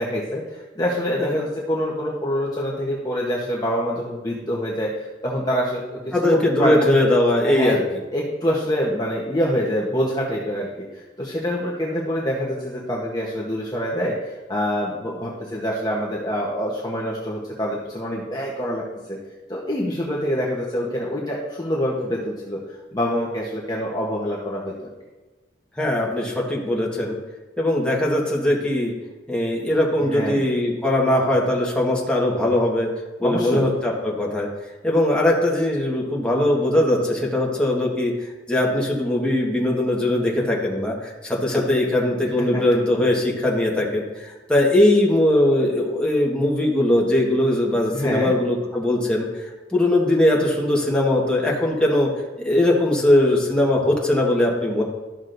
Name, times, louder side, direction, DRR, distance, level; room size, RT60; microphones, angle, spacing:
voice 1, 0.0-4.9 5.2-6.9 7.4-7.7 8.1-18.8 19.1-19.2 19.5-24.9 30.1-30.4 33.2-33.7 42.4-42.6 47.9-48.3, equal, 20° left, -5 dB, 1.0 m, -26 dB
voice 2, 6.1-7.8 25.8-27.2 27.6-28.9 29.3-32.9 33.2-34.5 34.8-38.1 38.5-52.1 52.4-54.8, left 1 dB, 5° left, -3 dB, 1.4 m, -20 dB
13.0 x 6.2 x 2.6 m, 1.2 s
head